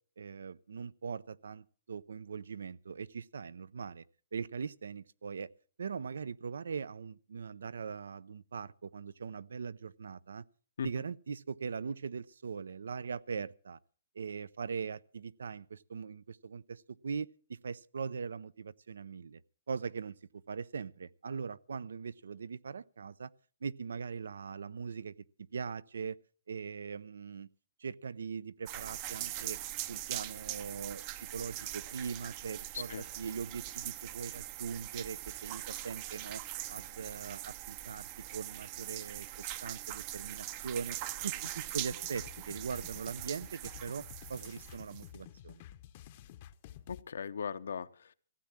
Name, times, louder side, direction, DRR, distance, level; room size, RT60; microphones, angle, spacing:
voice 1, 0.2-4.0 4.3-5.5 5.8-10.4 10.8-13.8 14.2-19.4 19.7-20.2 20.5-23.3 23.6-25.1 25.5-26.2 26.5-27.5 27.8-29.6 29.9-36.4 36.7-41.0 41.2-44.0 44.3-45.6, right 5 dB, 80° right, 0.6 m, -41 dB
sound 1, 28.7-45.1, right 14 dB, 30° right, 0.6 m, -42 dB
sound 2, 41.4-47.0, left 12 dB, 40° left, 0.7 m, -52 dB
voice 2, 46.9-48.1, left 6 dB, 75° left, 0.8 m, -38 dB
15.5 x 8.3 x 7.5 m
hypercardioid pair, 150°, 0 cm